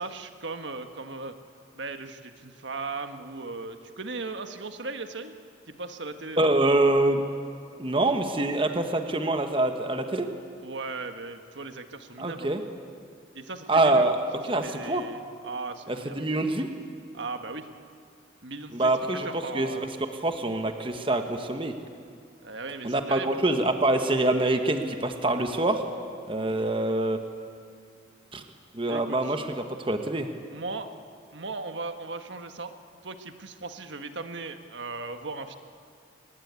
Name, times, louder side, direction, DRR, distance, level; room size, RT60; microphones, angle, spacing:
voice 1, 0.0-1.3 1.7-5.3 5.7-6.5 10.6-12.5 13.3-14.1 14.6-16.3 17.1-17.7 18.4-18.9 19.2-19.9 22.4-23.4 28.9-29.3 30.5-30.9 31.3-32.7 33.0-35.6, right 3 dB, 75° right, 7 dB, 1.6 m, -37 dB
voice 2, 6.4-7.2 7.8-10.3 12.2-12.6 13.7-14.2 14.4-15.0 15.9-16.7 18.7-19.3 19.5-19.9 20.2-21.7 22.8-25.8 26.3-27.2 28.3-28.4 28.7-30.3, right 2 dB, 30° right, 6 dB, 1.3 m, -25 dB
23.5 x 20.5 x 9.6 m, 2.3 s
head